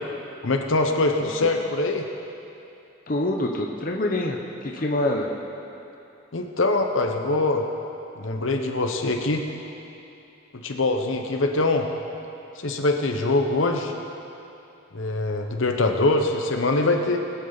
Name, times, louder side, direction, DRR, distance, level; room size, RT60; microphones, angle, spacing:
voice 1, 0.4-2.1 6.3-7.6 8.2-9.5 10.5-11.9 12.6-13.9 14.9-17.2, left 2 dB, 70° left, 3 dB, 1.0 m, -23 dB
voice 2, 3.1-5.3, left 1 dB, 40° left, 0 dB, 0.8 m, -26 dB
21.0 x 8.2 x 4.1 m, 2.8 s
head